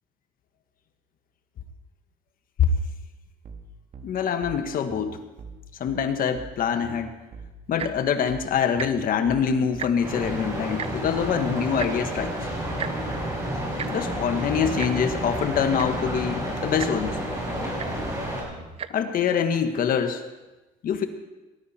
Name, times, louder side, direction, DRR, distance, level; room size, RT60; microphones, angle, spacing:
sound 1, 3.4-18.7, right 4 dB, 50° right, 1.7 m, -43 dB
voice 1, 4.0-5.2 5.8-7.1 7.7-12.4 13.9-17.2 18.9-20.2 20.8-21.1, left 7 dB, 55° left, 7 dB, 1.4 m, -25 dB
Tick-tock, 7.7-8.1 8.7-8.9 9.2-9.3 9.6-10.2 10.8-10.9 11.8-11.9 12.8-12.9 13.8-13.9 14.8-14.9 15.5-15.6 15.8-16.1 16.8-16.9 17.8-17.9 18.7-18.9 19.6-19.7, right 8 dB, 35° right, 0.6 m, -33 dB
sound 2, 10.0-18.4, equal, 20° right, 6.5 m, -30 dB
20.0 x 11.5 x 4.3 m, 1.1 s
cardioid pair, 110°, 17 cm